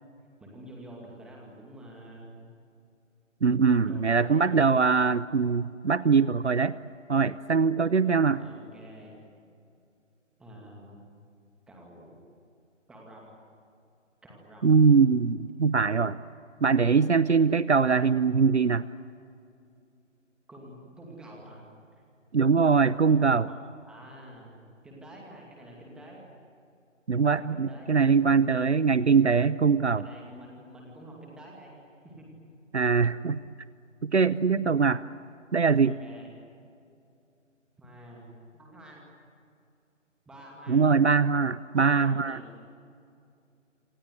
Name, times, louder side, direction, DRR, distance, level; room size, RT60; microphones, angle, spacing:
voice 1, 0.4-2.5 3.7-4.5 8.3-9.2 10.4-11.0 11.7-12.2 12.9-13.3 14.2-15.0 20.5-21.6 23.5-23.6 23.9-24.5 24.8-26.3 27.4-28.1 29.9-32.3 35.2-35.3 35.8-36.4 37.8-39.0 40.3-40.9 41.7-42.6, right 1 dB, ahead, -1 dB, 2.3 m, -48 dB
voice 2, 3.4-6.7 7.1-8.4 14.6-16.2 16.6-18.8 22.3-23.4 27.1-30.0 32.7-33.4 34.0-35.0 35.5-35.9 40.7-42.4, right 5 dB, 60° right, 17 dB, 0.8 m, -22 dB
27.0 x 26.0 x 8.0 m, 2.5 s
figure-of-eight pair, 155°, 38 cm